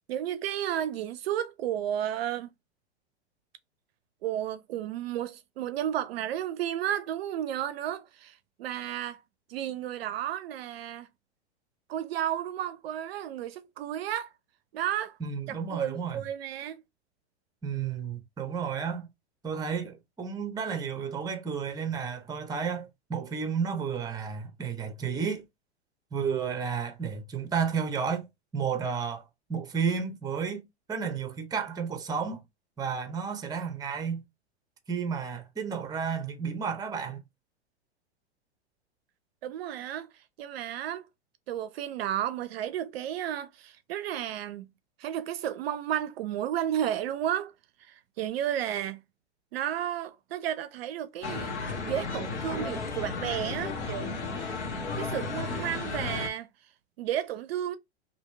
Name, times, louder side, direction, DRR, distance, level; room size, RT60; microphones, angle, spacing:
voice 1, 0.1-2.5 4.2-9.2 9.5-11.1 11.9-14.3 14.7-15.2 15.5-16.8 39.4-41.1 41.5-44.7 45.0-47.5 47.8-49.0 49.5-51.6 51.8-54.2 55.0-56.5 57.0-57.8, right 11 dB, 60° right, 0.5 m, -32 dB
voice 2, 15.2-16.2 17.6-19.1 19.4-25.4 26.1-28.3 28.5-29.2 29.5-32.4 32.8-34.2 34.9-37.2, right 6 dB, 10° right, 0.7 m, -32 dB
sound 1, 51.2-56.3, left 4 dB, 80° left, 1.2 m, -34 dB
3.0 x 2.7 x 3.1 m
hypercardioid pair, 110°, 34 cm